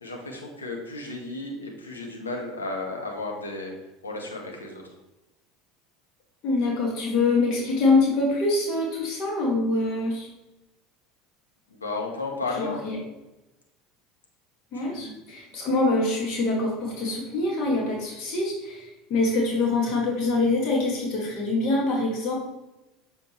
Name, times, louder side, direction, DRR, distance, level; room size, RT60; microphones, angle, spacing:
voice 1, 0.0-3.7 4.0-4.8 11.7-12.8 14.7-15.2, left 3 dB, 90° left, 0 dB, 1.2 m, -33 dB
voice 2, 6.4-10.3 12.6-13.0 14.7-22.3, left 2 dB, 55° left, -1 dB, 2.0 m, -25 dB
7.4 x 5.1 x 3.1 m, 1.0 s
hypercardioid pair, 75°, 0 cm